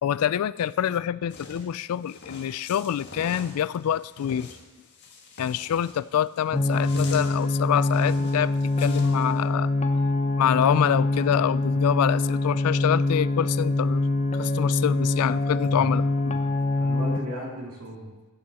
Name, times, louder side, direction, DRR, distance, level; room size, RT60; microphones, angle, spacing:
voice 1, 0.0-4.5 5.4-8.5 8.8-9.7 10.4-14.0 14.4-16.4, left 9 dB, 90° left, 20 dB, 0.3 m, -26 dB
sound 1, 1.3-9.4, left 3 dB, 50° left, 1.7 m, -45 dB
sound 2, 6.5-17.2, left 2 dB, 30° left, 0.7 m, -24 dB
voice 2, 15.7-16.4 16.7-18.1, equal, 85° right, -3 dB, 2.9 m, -37 dB
15.0 x 7.8 x 4.1 m, 1.2 s
head